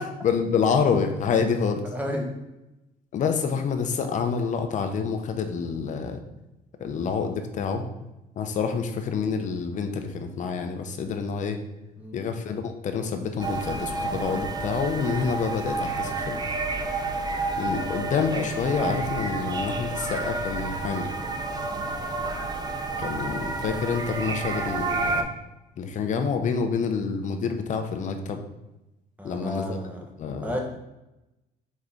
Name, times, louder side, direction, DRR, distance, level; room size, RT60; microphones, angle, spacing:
voice 1, 0.2-1.8 3.1-6.2 6.8-7.8 8.4-11.6 12.1-16.4 17.6-21.1 23.0-25.3 25.8-28.4 29.2-29.8 30.2-30.5, left 6 dB, 45° left, 6 dB, 0.6 m, -27 dB
voice 2, 1.9-2.3 6.8-7.0 12.0-12.2 17.8-18.0 21.7-21.9 29.2-30.0 30.4-30.6, equal, 10° right, 1 dB, 0.9 m, -33 dB
sound 1, 13.4-25.2, right 3 dB, 25° right, 0.5 m, -30 dB
4.2 x 3.7 x 3.4 m, 0.96 s
cardioid pair, 110°, 17 cm